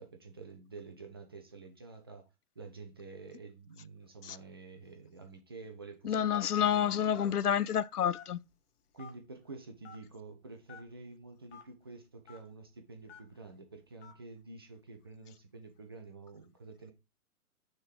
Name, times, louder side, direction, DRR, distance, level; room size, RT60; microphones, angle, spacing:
voice 1, 0.0-2.2 2.6-7.3 8.9-16.9, right 3 dB, 20° right, 0.4 m, -49 dB
voice 2, 6.1-8.4, left 9 dB, 85° left, 0.5 m, -29 dB
Telephone, 6.3-6.6 7.1-7.3 8.1-8.5 9.0-9.1 9.8-10.0 10.7-10.8 11.5-11.6 12.3-12.4 13.1-13.3 14.0-14.2, left 7 dB, 45° left, 1.8 m, -49 dB
6.3 x 3.7 x 4.7 m
figure-of-eight pair, 125°, 45 cm